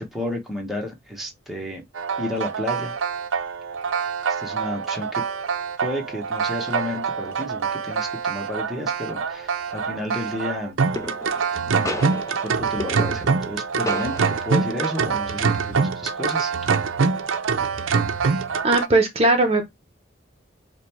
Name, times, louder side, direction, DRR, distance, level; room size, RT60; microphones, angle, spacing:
voice 1, 0.0-1.8 2.2-2.9 4.3-5.2 5.8-10.8 11.7-14.2 14.4-16.5, left 1 dB, ahead, 0.9 m, -32 dB
sound 1, 1.9-18.9, right 5 dB, 85° right, 0.6 m, -25 dB
sound 2, 9.7-10.1 11.0-11.6 11.8-13.6 13.9-14.6, left 2 dB, 15° left, 0.5 m, -33 dB
voice 2, 18.6-19.6, right 2 dB, 30° right, 0.7 m, -18 dB
5.0 x 2.2 x 4.3 m
head